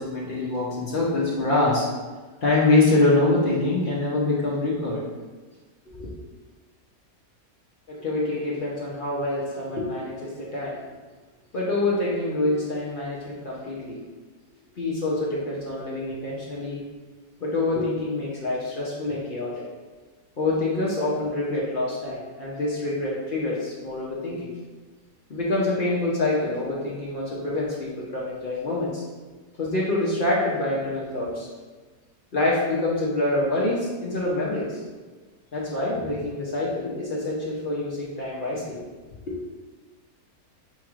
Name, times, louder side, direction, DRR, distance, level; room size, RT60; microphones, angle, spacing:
voice 1, 0.0-1.9 2.4-5.0 5.9-6.1 7.9-10.7 11.5-14.0 14.8-16.8 17.4-19.7 20.4-24.5 25.3-29.0 29.6-31.5 32.3-34.8 35.5-38.8 39.3-39.4, left 2 dB, 55° left, -5 dB, 0.6 m, -25 dB
6.2 x 3.0 x 2.4 m, 1.3 s
omnidirectional pair, 1.7 m